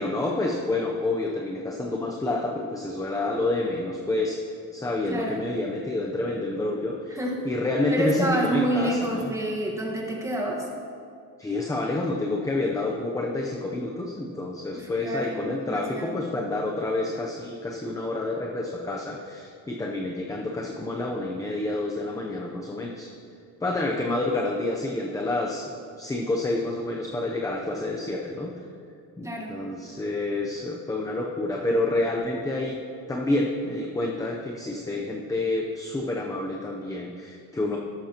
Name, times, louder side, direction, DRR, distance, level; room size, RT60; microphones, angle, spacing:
voice 1, 0.0-4.4 4.7-7.2 7.4-9.3 11.4-23.1 23.6-25.7 26.0-28.5 29.2-32.8 33.1-37.8, left 2 dB, 10° left, -1 dB, 0.6 m, -28 dB
voice 2, 5.1-5.5 7.1-7.4 7.9-10.6 14.7-16.1 29.2-29.6, right 1 dB, 10° right, -2 dB, 1.4 m, -29 dB
13.5 x 12.0 x 2.9 m, 2.3 s
cardioid pair, 160°, 37 cm